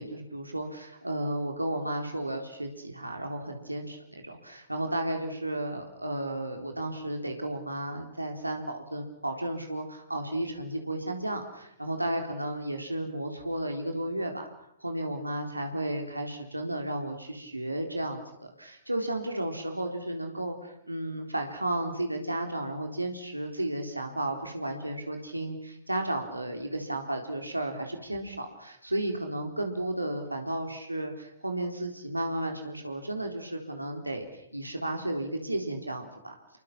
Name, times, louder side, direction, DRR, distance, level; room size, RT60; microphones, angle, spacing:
voice 1, 0.0-14.4 14.8-36.3, right 1 dB, 90° right, 3 dB, 3.9 m, -33 dB
29.5 x 23.5 x 6.1 m, 0.76 s
figure-of-eight pair, 110°, 0 cm